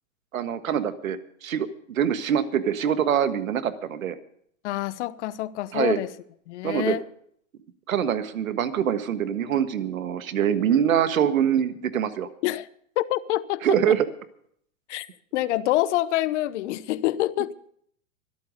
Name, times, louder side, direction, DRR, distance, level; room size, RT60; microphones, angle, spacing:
voice 1, 0.3-4.2 5.7-6.0 6.6-6.9 7.9-12.3 13.6-14.1, right 9 dB, 90° right, 1.6 m, -24 dB
voice 2, 4.6-6.1 6.5-7.0 12.4-12.7 13.0-13.9 14.9-15.1 15.3-17.5, left 15 dB, 60° left, 1.0 m, -26 dB
24.5 x 8.7 x 5.2 m
hypercardioid pair, 130°, 40 cm